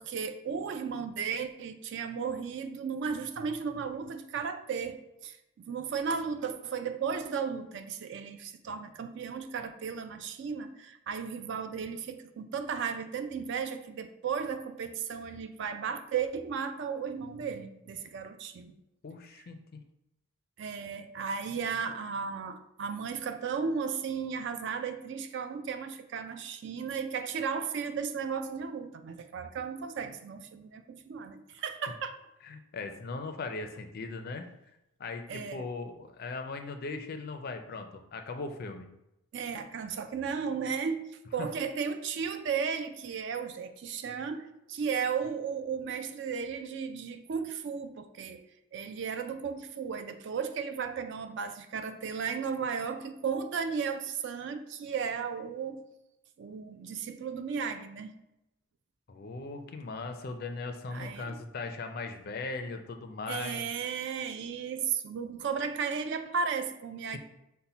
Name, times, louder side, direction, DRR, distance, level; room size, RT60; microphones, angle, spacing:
voice 1, 0.0-18.7 19.4-19.5 20.6-32.2 35.3-35.7 39.3-41.0 41.3-48.4 48.7-55.8 56.4-58.1 60.9-61.4 63.3-67.2, right 6 dB, 50° right, 9 dB, 0.3 m, -35 dB
voice 2, 19.0-19.8 32.4-34.4 35.0-38.9 41.4-41.5 59.1-63.6, left 3 dB, 45° left, 6 dB, 0.4 m, -39 dB
5.5 x 2.1 x 4.0 m, 0.87 s
head